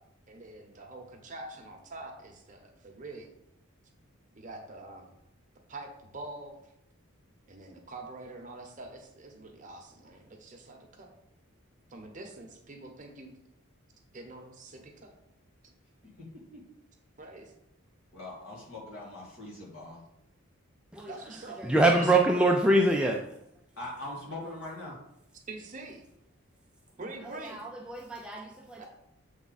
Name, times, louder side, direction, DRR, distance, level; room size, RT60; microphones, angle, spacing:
voice 1, 0.3-3.3 4.3-5.1 5.7-6.5 7.5-11.1 11.9-13.3 14.1-15.1 17.2-17.5 21.1-21.7 22.0-22.2 25.5-26.0 27.0-27.6 28.8-28.9, right 2 dB, 35° right, 2 dB, 0.9 m, -45 dB
voice 2, 16.0-16.6 18.1-20.0 23.8-25.0, left 1 dB, 65° left, -4 dB, 2.3 m, -42 dB
voice 3, 21.6-23.2 27.5-28.8, right 2 dB, 5° right, 0 dB, 0.4 m, -24 dB
7.3 x 3.5 x 4.0 m, 0.78 s
head